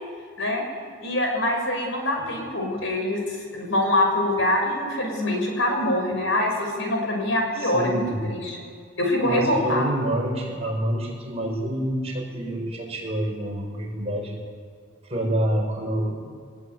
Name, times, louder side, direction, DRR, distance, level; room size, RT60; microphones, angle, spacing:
voice 1, 1.0-8.6 9.0-9.8, left 1 dB, 60° left, 2 dB, 6.2 m, -24 dB
voice 2, 7.6-8.2 9.2-14.4 15.1-16.3, right 1 dB, 30° right, -1 dB, 6.4 m, -27 dB
23.5 x 20.5 x 9.5 m, 2.2 s
head